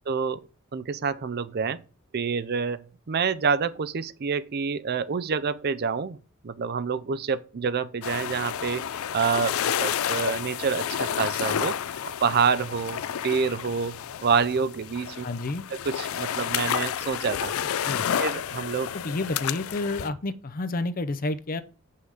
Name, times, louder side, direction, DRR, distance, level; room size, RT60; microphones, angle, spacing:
voice 1, 0.1-0.4 0.7-1.8 2.1-6.2 6.4-8.8 9.1-11.8 12.2-15.2 15.7-17.5 18.2-18.9, right 5 dB, 50° right, 0.5 m, -27 dB
sound 1, 8.0-20.1, left 9 dB, 90° left, 0.4 m, -30 dB
voice 2, 15.2-15.6 17.8-18.0 18.9-21.6, left 2 dB, 45° left, 0.6 m, -30 dB
7.8 x 5.6 x 4.9 m
head